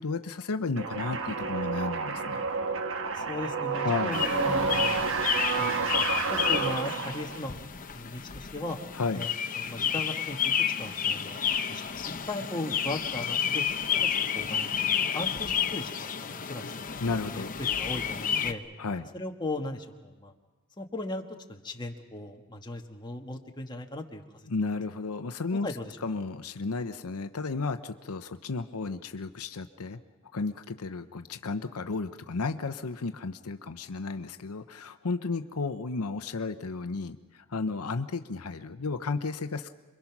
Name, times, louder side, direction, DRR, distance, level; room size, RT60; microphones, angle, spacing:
voice 1, 0.0-2.4 3.8-4.2 8.9-9.3 17.0-17.5 18.8-19.1 24.5-25.7 26.0-30.0 30.3-39.7, left 4 dB, 80° left, 9 dB, 0.8 m, -33 dB
sound 1, 0.8-7.5, right 4 dB, 65° right, 1.3 m, -30 dB
voice 2, 3.1-5.1 5.6-7.6 7.9-8.8 9.1-9.3 9.5-10.5 10.8-11.4 11.7-13.6 13.9-14.8 15.1-16.8 17.3-18.6 19.1-20.3 20.8-21.2 21.5-24.2 24.6-24.8 25.6-25.9, left 1 dB, 20° left, 2 dB, 1.6 m, -37 dB
sound 2, 4.1-18.5, left 8 dB, 40° left, 0.8 m, -31 dB
27.5 x 23.0 x 6.0 m, 1.3 s
head